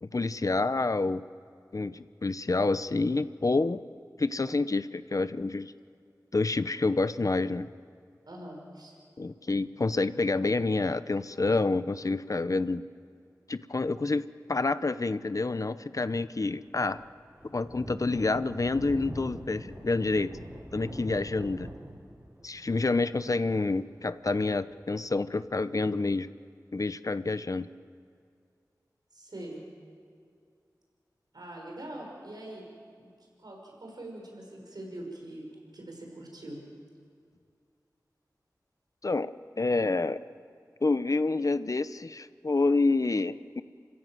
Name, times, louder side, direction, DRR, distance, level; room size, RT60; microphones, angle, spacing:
voice 1, 0.0-1.2 1.7-3.8 4.2-5.7 6.3-7.7 9.2-12.8 13.5-17.0 17.5-20.3 20.7-21.7 22.4-26.3 26.7-27.7 39.0-39.3 39.6-40.2 40.8-43.6, left 3 dB, 50° left, 14 dB, 0.7 m, -28 dB
voice 2, 8.3-8.9 29.1-29.6 31.3-32.7 33.0-33.1 33.4-35.4 35.7-36.6, right 1 dB, 70° right, 0 dB, 5.7 m, -43 dB
Thunder, 16.4-25.5, right 1 dB, 30° right, 5.6 m, -44 dB
27.5 x 16.0 x 7.7 m, 2.3 s
cardioid pair, 40°, 7 cm